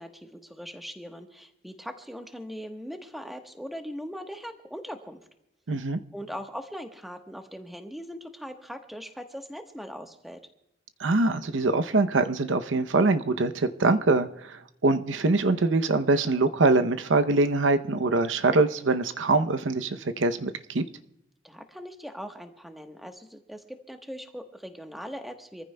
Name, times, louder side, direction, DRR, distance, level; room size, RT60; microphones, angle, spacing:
voice 1, 0.0-5.2 6.1-10.4 21.4-25.6, equal, ahead, 4 dB, 1.1 m, -40 dB
voice 2, 5.7-6.0 11.0-20.8, right 3 dB, 85° right, 10 dB, 0.7 m, -24 dB
27.0 x 15.0 x 2.2 m, 0.85 s
head